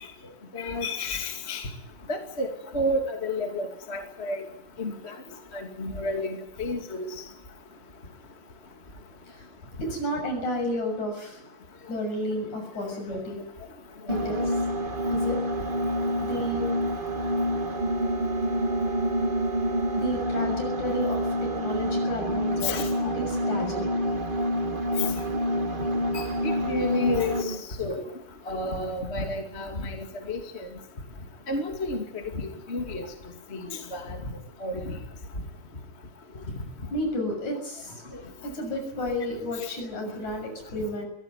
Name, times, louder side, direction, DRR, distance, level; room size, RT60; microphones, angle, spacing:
voice 1, 0.5-1.7 2.1-2.5 2.7-4.5 4.8-5.1 5.5-7.1 13.1-13.2 22.6-23.1 26.1-28.0 28.5-30.7 31.5-33.1 33.5-34.2 34.6-35.0 38.1-38.2, left 2 dB, 20° left, 4 dB, 2.4 m, -31 dB
voice 2, 9.8-11.4 11.9-13.4 14.1-14.6 15.1-15.4 16.2-16.7 19.9-24.1 36.9-38.0 38.4-41.1, left 1 dB, 60° left, 4 dB, 8.3 m, -32 dB
sound 1, 14.1-27.6, equal, 70° right, 0.5 m, -27 dB
23.0 x 17.0 x 9.7 m, 0.76 s
omnidirectional pair, 3.8 m